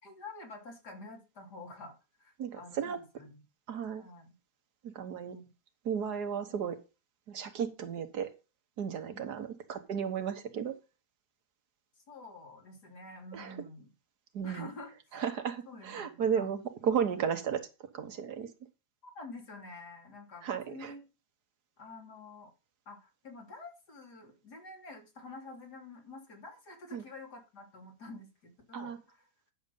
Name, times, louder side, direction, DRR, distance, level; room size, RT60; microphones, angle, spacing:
voice 1, 0.0-3.4 4.0-4.3 5.3-5.5 9.1-9.2 12.1-13.9 14.4-15.4 15.7-16.5 19.0-21.0 21.8-22.5 22.9-29.3, left 2 dB, 90° left, 1 dB, 3.8 m, -48 dB
voice 2, 2.4-3.0 3.7-4.0 4.8-5.4 5.8-6.8 7.3-8.3 8.8-10.8 13.3-13.5 14.3-14.7 15.1-17.7 17.9-18.5 20.4-20.9 26.9-27.0 28.7-29.0, right 7 dB, 80° right, 8 dB, 1.8 m, -34 dB
11.0 x 6.6 x 5.4 m, 0.30 s
omnidirectional pair, 1.7 m